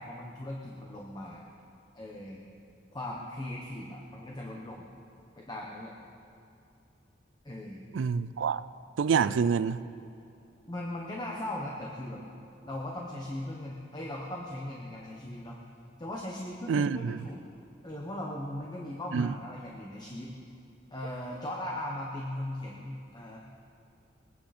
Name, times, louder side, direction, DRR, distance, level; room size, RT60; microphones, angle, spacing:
voice 1, 0.0-1.4 1.9-2.4 2.9-4.9 5.4-5.9 7.4-7.9 9.1-9.4 10.7-12.2 12.6-15.6 16.0-17.4 17.8-20.4 20.9-23.4, left 1 dB, 25° left, 1.1 m, -38 dB
voice 2, 7.9-8.6 9.0-9.8 16.7-17.2 19.1-19.3, right 6 dB, 80° right, 0.4 m, -27 dB
21.0 x 9.7 x 4.3 m
head